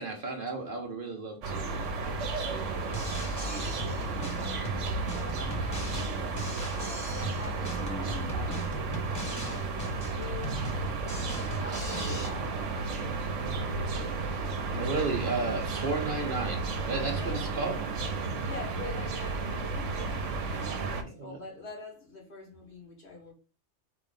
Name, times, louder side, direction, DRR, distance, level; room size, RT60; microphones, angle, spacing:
voice 1, 0.0-2.0 2.4-3.7 14.2-18.0 21.0-21.4, right 3 dB, 50° right, 0.9 m, -35 dB
sound 1, 1.4-21.0, right 3 dB, 75° right, 1.1 m, -33 dB
Drum kit, 2.9-12.3, equal, 15° left, 1.2 m, -39 dB
voice 2, 4.8-6.5 7.0-8.7 9.2-10.7 11.4-13.3 17.1-17.4 18.4-20.0 20.6-23.3, left 3 dB, 55° left, 2.1 m, -45 dB
4.6 x 3.1 x 3.7 m
omnidirectional pair, 1.3 m